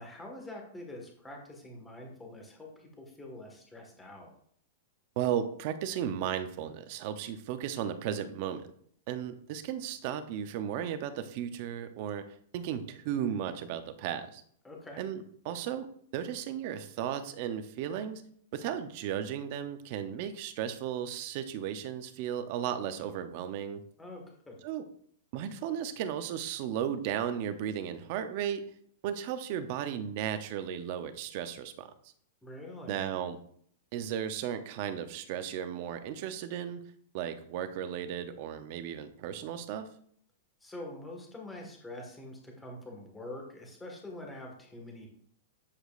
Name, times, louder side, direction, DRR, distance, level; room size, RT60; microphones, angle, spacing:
voice 1, 0.0-4.3 14.6-15.0 24.0-24.6 32.4-33.1 40.6-45.1, left 1 dB, 5° left, 0 dB, 1.6 m, -45 dB
voice 2, 5.2-8.7 9.1-14.4 15.0-15.9 16.1-18.2 18.5-23.8 24.6-24.8 25.3-28.6 29.0-31.9 32.9-33.4 33.9-36.8 37.1-39.9, right 9 dB, 40° right, 10 dB, 0.7 m, -35 dB
8.4 x 8.1 x 2.5 m, 0.62 s
supercardioid pair, 165°, 0 cm